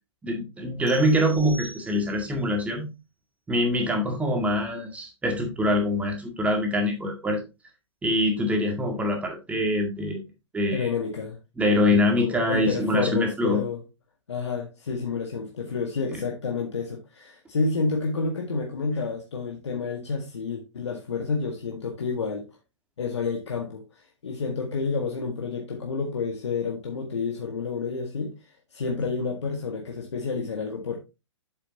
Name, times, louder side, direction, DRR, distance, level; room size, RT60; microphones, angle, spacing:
voice 1, 0.2-2.9 3.5-7.4 8.0-10.2 10.5-10.9 11.6-13.6 16.1-16.2, left 1 dB, 10° right, 1.9 m, -24 dB
sound 1, 0.9-2.4, right 1 dB, 35° left, 2.4 m, -44 dB
voice 2, 10.7-11.4 11.9-13.8 14.3-22.5 23.0-31.0, left 4 dB, 70° left, 1.7 m, -29 dB
8.0 x 7.6 x 2.9 m
figure-of-eight pair, 115°, 15 cm